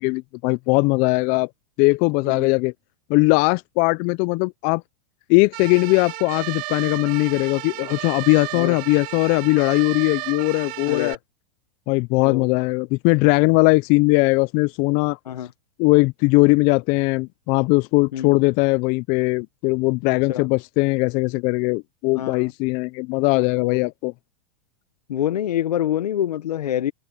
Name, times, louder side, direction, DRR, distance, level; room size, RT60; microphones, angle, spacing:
voice 1, 0.0-1.5 1.8-2.7 3.1-4.8 5.3-11.2 11.9-15.2 15.8-24.1, left 26 dB, 45° left, 0.6 m, -20 dB
sound 1, 5.5-11.1, right 21 dB, 45° right, 2.7 m, -33 dB
voice 2, 10.9-11.2 12.2-12.5 15.3-15.5 18.1-18.3 20.3-20.5 22.1-22.5 23.3-23.9 25.1-26.9, left 11 dB, 85° left, 1.2 m, -26 dB
hypercardioid pair, 125°, 20 cm